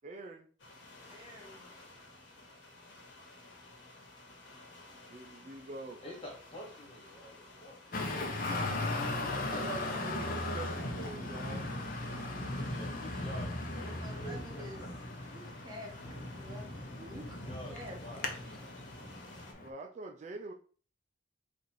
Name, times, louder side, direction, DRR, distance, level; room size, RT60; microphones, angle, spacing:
voice 1, 0.0-0.5 1.9-2.2 5.1-6.0 9.5-11.7 19.6-20.5, right 3 dB, 40° right, 2 dB, 0.4 m, -46 dB
sound 1, 0.6-19.5, left 1 dB, 75° left, 1.2 m, -46 dB
voice 2, 1.1-1.6 13.8-14.8 15.3-18.2, left 1 dB, 20° right, -1 dB, 1.0 m, -49 dB
voice 3, 6.0-7.8 12.7-14.9 17.4-18.3, equal, 30° left, -1 dB, 1.5 m, -48 dB
Traffic noise roadway noise, 7.9-19.7, left 2 dB, 45° left, 0.7 m, -38 dB
4.2 x 2.6 x 4.7 m, 0.42 s
head